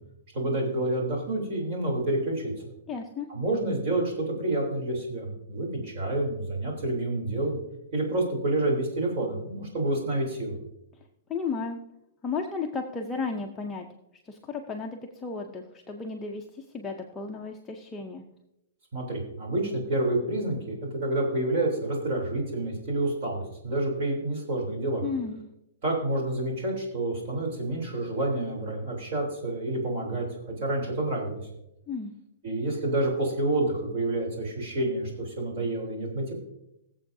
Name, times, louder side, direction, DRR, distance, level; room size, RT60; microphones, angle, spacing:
voice 1, 0.3-2.5 3.3-7.6 7.9-10.6 18.9-25.0 25.8-31.4 32.4-36.3, right 2 dB, 40° right, -1 dB, 3.3 m, -28 dB
voice 2, 2.9-3.3 11.3-11.8 12.2-13.9 14.2-18.2 25.0-25.4 31.9-32.1, left 4 dB, 10° left, 0 dB, 0.6 m, -34 dB
20.5 x 7.5 x 2.7 m, 0.85 s
hypercardioid pair, 165°, 0 cm